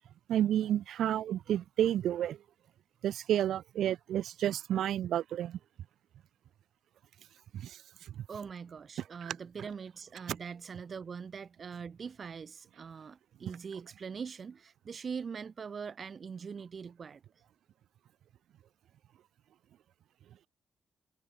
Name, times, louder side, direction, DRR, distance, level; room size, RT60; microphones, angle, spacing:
voice 1, 0.3-2.4 3.0-5.6 7.6-8.2 9.2-9.3, right 11 dB, 85° right, 0.3 m, -31 dB
voice 2, 8.3-17.2, right 6 dB, 50° right, 2.6 m, -42 dB
cardioid pair, 80°, 0 cm